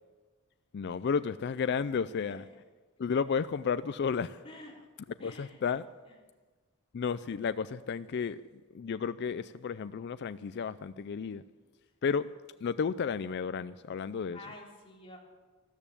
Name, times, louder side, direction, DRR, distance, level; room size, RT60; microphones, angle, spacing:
voice 1, 0.7-2.4 3.0-4.4 5.2-5.9 6.9-8.4 8.7-11.4 12.0-12.3 12.6-14.4, left 6 dB, 55° left, 14 dB, 0.4 m, -32 dB
voice 2, 1.9-2.4 4.4-4.8 5.2-5.6 6.1-6.2 14.3-15.2, left 2 dB, 25° left, -2 dB, 3.5 m, -50 dB
13.5 x 12.5 x 7.2 m, 1.3 s
head